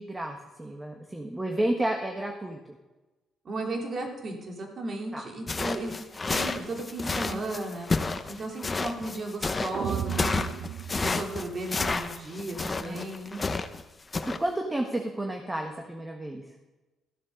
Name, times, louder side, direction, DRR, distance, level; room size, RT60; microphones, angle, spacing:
voice 1, 0.0-2.8 5.1-5.3 12.8-12.9 13.3-13.4 14.4-16.5, right 1 dB, 15° right, 3 dB, 1.5 m, -31 dB
voice 2, 3.4-6.0 6.3-7.9 8.3-10.5 11.0-13.3, right 2 dB, 50° right, 1 dB, 3.1 m, -35 dB
Foot steps in snow, 5.5-13.8 14.1-14.4, left 3 dB, 25° left, 0.9 m, -30 dB
sound 1, 9.7-12.0, right 9 dB, 65° right, 0.5 m, -35 dB
14.5 x 7.6 x 6.6 m, 1.1 s
cardioid pair, 90°, 0 cm